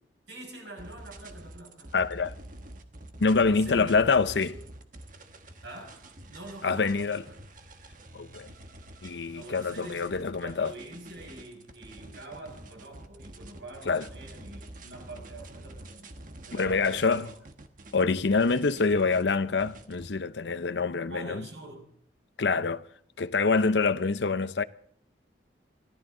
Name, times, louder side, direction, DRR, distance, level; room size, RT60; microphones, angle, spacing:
voice 1, 0.3-2.0 3.4-4.0 4.5-4.6 5.6-7.4 9.3-16.1 16.5-17.3 21.1-21.9, right 2 dB, 85° right, 5.9 m, -45 dB
sound 1, 0.8-20.1, right 1 dB, 50° right, 1.4 m, -47 dB
voice 2, 1.9-2.3 3.2-4.5 6.6-7.2 8.1-8.5 9.0-10.7 13.9-14.1 16.5-17.3 17.9-21.4 22.4-22.8 23.2-24.6, left 4 dB, 80° left, 0.7 m, -26 dB
24.5 x 15.5 x 3.8 m
head